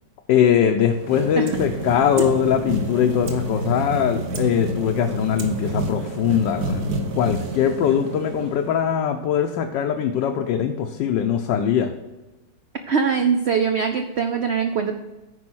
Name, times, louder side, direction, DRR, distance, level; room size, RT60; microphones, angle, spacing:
voice 1, 0.3-6.8 7.1-11.9, left 8 dB, 80° left, 4 dB, 1.3 m, -21 dB
sound 1, 0.7-9.0, right 2 dB, 60° right, 1.5 m, -29 dB
voice 2, 12.9-15.0, right 6 dB, 85° right, 6 dB, 0.5 m, -22 dB
9.5 x 4.9 x 6.1 m, 1.1 s
omnidirectional pair, 1.9 m